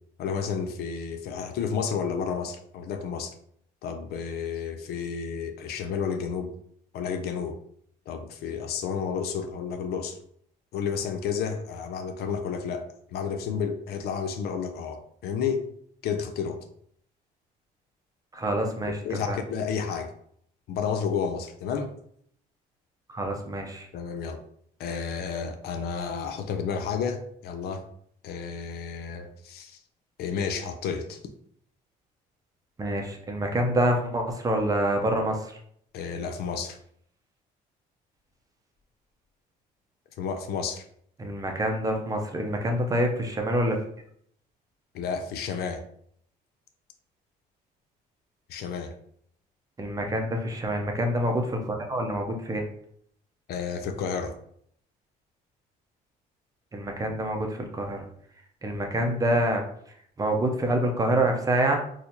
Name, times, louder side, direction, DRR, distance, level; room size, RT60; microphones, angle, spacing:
voice 1, 0.2-3.3 3.8-6.5 6.9-7.6 8.1-10.2 10.7-15.7 16.0-16.7 19.0-20.1 20.7-21.9 23.9-24.4 24.8-27.8 28.2-29.8 30.2-31.2 35.9-36.8 40.2-40.8 44.9-45.8 48.5-48.9 53.5-54.3, left 6 dB, 70° left, 7 dB, 0.5 m, -31 dB
voice 2, 18.3-19.4 23.1-23.9 32.8-35.6 41.2-43.8 49.8-52.7 56.7-58.1 58.6-59.6 60.2-61.8, right 1 dB, 20° right, 3 dB, 0.6 m, -26 dB
4.2 x 2.4 x 2.7 m, 0.66 s
cardioid pair, 110°, 17 cm